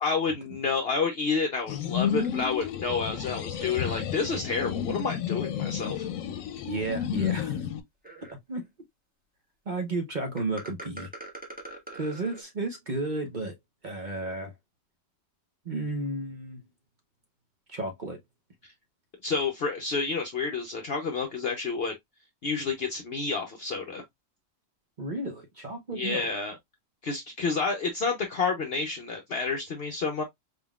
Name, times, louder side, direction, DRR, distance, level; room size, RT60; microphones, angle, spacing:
voice 1, 0.0-6.1 19.2-21.9 22.4-24.0 25.9-26.6 27.0-30.2, left 4 dB, 55° left, 0.9 m, -29 dB
sound 1, 1.7-7.8, left 9 dB, 85° left, 1.0 m, -31 dB
sound 2, 2.2-2.4 3.6-4.5 5.0-5.1 5.8-5.9 6.6-6.7 7.1-7.3 8.0-8.5 10.4-12.4, right 1 dB, 5° right, 1.2 m, -43 dB
voice 2, 6.7-7.6 8.3-8.6 9.7-11.1 11.9-13.5 13.8-14.5 15.6-16.6 17.7-18.2 25.0-26.3, right 2 dB, 40° right, 0.8 m, -33 dB
4.2 x 3.6 x 2.3 m
omnidirectional pair, 1.4 m